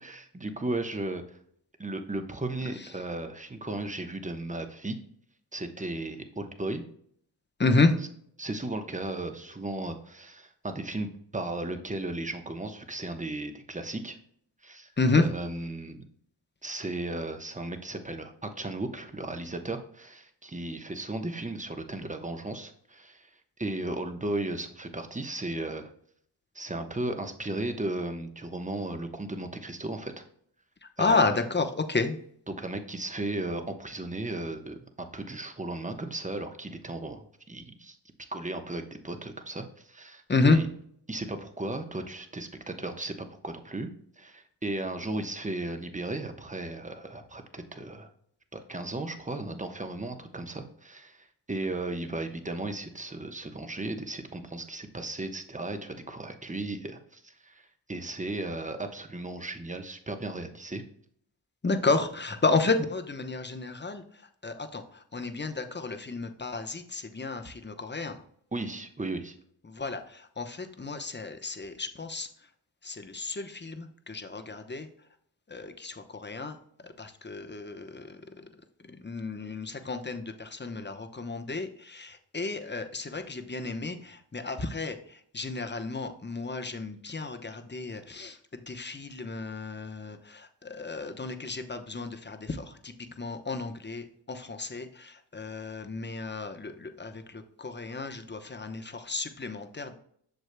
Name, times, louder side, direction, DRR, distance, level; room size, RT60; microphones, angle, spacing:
voice 1, 0.0-1.4 1.8-5.0 5.5-6.8 8.4-11.1 11.3-14.2 14.6-14.9 15.2-16.0 16.6-23.3 23.6-25.9 26.5-30.2 31.0-31.3 32.5-38.0 38.3-40.6 41.1-43.9 44.2-48.1 48.5-60.8 68.5-69.3, right 2 dB, 15° right, 6 dB, 1.0 m, -35 dB
voice 2, 7.6-7.9 15.0-15.3 30.8-32.2 40.3-40.6 61.6-64.0 64.4-68.2 69.7-72.3 72.8-74.9 75.5-78.5 78.8-99.9, left 3 dB, 25° left, 7 dB, 0.9 m, -31 dB
8.0 x 6.3 x 2.2 m, 0.65 s
cardioid pair, 50°, 43 cm